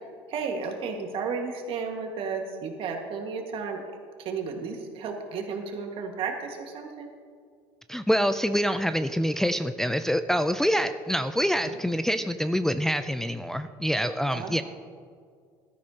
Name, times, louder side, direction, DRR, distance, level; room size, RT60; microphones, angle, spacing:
voice 1, 0.3-3.8 4.2-7.1 10.7-10.8 11.6-11.7 14.3-14.6, right 5 dB, 55° right, 3 dB, 1.7 m, -33 dB
voice 2, 7.9-14.6, equal, 5° left, 9 dB, 0.4 m, -26 dB
14.5 x 13.0 x 2.9 m, 2.1 s
supercardioid pair, 90°, 11 cm